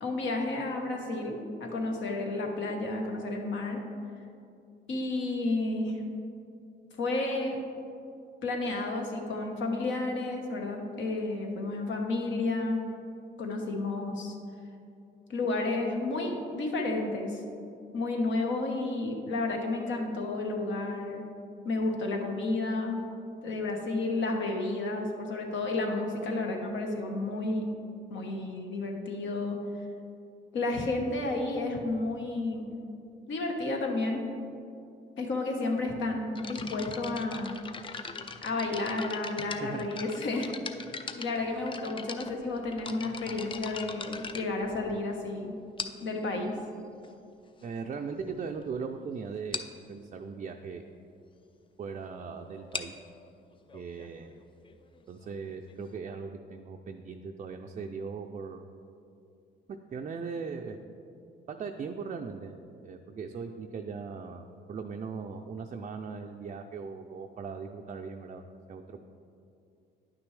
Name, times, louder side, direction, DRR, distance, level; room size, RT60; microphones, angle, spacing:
voice 1, 0.0-3.8 4.9-6.0 6.9-7.6 8.4-12.9 13.4-14.4 15.3-17.4 17.9-21.2 21.6-23.0 23.4-27.6 28.1-29.6 30.5-32.7 33.3-34.3 35.2-37.6 38.4-40.9 41.2-45.5 46.0-46.6, left 2 dB, 70° left, 2 dB, 1.2 m, -31 dB
sound 1, 36.4-45.2 45.8-46.2 47.0-47.1 47.8-47.9 48.1-48.3 48.6-48.8 49.0-49.1 49.5-49.8 52.5-56.0, left 5 dB, 25° left, 0.4 m, -41 dB
voice 2, 39.5-39.9 47.6-49.6 49.9-50.8 51.8-52.9 53.7-54.4 55.1-58.7 59.7-60.8 61.5-62.5 62.8-68.4 68.7-69.0, right 5 dB, 35° right, 3 dB, 0.4 m, -39 dB
10.0 x 6.0 x 3.2 m, 2.6 s
cardioid pair, 90°, 20 cm